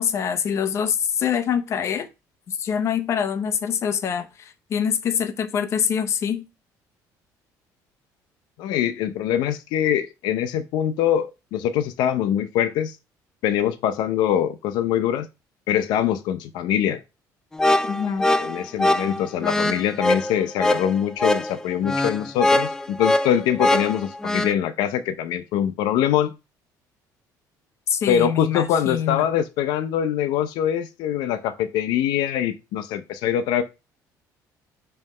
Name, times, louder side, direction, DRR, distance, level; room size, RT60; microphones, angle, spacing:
voice 1, 0.0-2.1 2.5-6.4 17.9-18.3 27.9-29.3, left 8 dB, 40° left, 0.7 m, -25 dB
voice 2, 8.6-13.0 13.4-15.3 15.7-17.0 18.4-26.4 28.1-33.6, left 10 dB, 80° left, 0.6 m, -23 dB
sound 1, 17.5-24.5, left 1 dB, 10° left, 0.3 m, -22 dB
5.5 x 3.1 x 5.4 m
cardioid pair, 150°, 7 cm